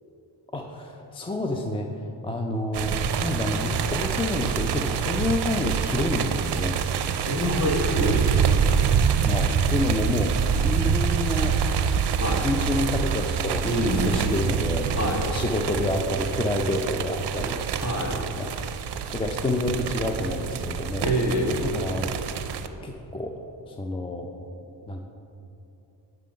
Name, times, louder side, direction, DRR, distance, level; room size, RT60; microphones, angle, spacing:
voice 1, 0.5-1.9 2.2-6.7 9.2-11.6 12.4-14.9 15.2-17.6 18.4-18.5 19.1-21.1 21.6-22.1 22.8-23.3 23.7-24.3 24.9-25.0, left 1 dB, 15° left, 3 dB, 0.4 m, -28 dB
sound 1, 2.7-22.7, right 7 dB, 65° right, 0.5 m, -26 dB
voice 2, 7.3-8.3 12.2-12.4 13.6-14.4 14.9-15.3 17.8-18.2 21.0-21.6, equal, 35° left, 0 dB, 1.3 m, -26 dB
6.7 x 5.7 x 5.0 m, 2.9 s
cardioid pair, 90°, 44 cm